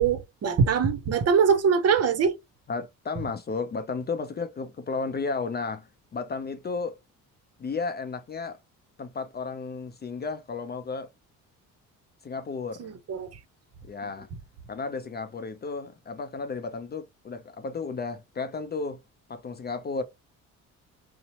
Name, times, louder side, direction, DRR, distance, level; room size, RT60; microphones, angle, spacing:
voice 1, 0.0-2.4 12.8-13.3, right 6 dB, 45° right, 0.7 m, -23 dB
voice 2, 2.7-6.9 7.6-8.6 9.0-11.1 12.2-12.9 13.8-14.3 14.7-19.0 19.3-20.0, left 4 dB, 30° left, 0.4 m, -33 dB
2.7 x 2.0 x 2.8 m
supercardioid pair, 75°, 35 cm